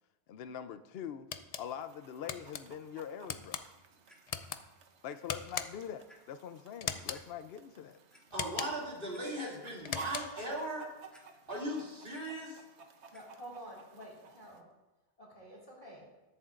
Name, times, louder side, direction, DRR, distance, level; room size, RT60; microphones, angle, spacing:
voice 1, 0.3-1.3 1.6-3.6 5.0-8.0, left 8 dB, 65° left, 11 dB, 0.8 m, -43 dB
sound 1, 1.3-1.7 2.3-2.6 3.3-3.6 4.3-4.6 5.3-5.9 6.8-7.2 8.3-8.9 9.8-10.4, left 7 dB, 50° left, 0.4 m, -39 dB
Chicken rooster, 1.7-14.6, right 5 dB, 85° right, 1.1 m, -53 dB
Clock, 4.1-4.2 5.1-5.2 5.6-5.7 6.1-6.2 7.1-7.2 7.9-8.2 8.7-8.8 9.1-9.2 9.7-10.2 11.1-11.6 11.9-12.2 13.1-13.2 13.9-14.0, equal, ahead, 2.1 m, -61 dB
voice 2, 8.3-10.9 11.5-12.6, right 1 dB, 55° right, -4 dB, 2.8 m, -38 dB
voice 3, 13.1-14.7 15.2-16.1, right 1 dB, 35° left, -4 dB, 2.3 m, -49 dB
21.0 x 7.2 x 2.5 m, 1.1 s
omnidirectional pair, 1.1 m